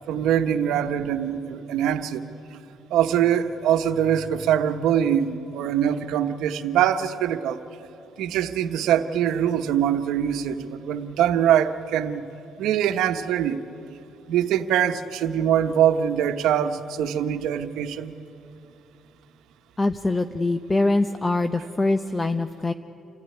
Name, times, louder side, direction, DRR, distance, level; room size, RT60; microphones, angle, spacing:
voice 1, 0.1-2.2 2.9-7.6 8.2-12.3 12.6-13.6 14.3-18.1, right 9 dB, 90° right, 8 dB, 1.1 m, -23 dB
voice 2, 19.8-22.7, left 2 dB, 20° left, 9 dB, 0.7 m, -23 dB
29.0 x 14.0 x 9.9 m, 2.8 s
cardioid pair, 90°, 0 cm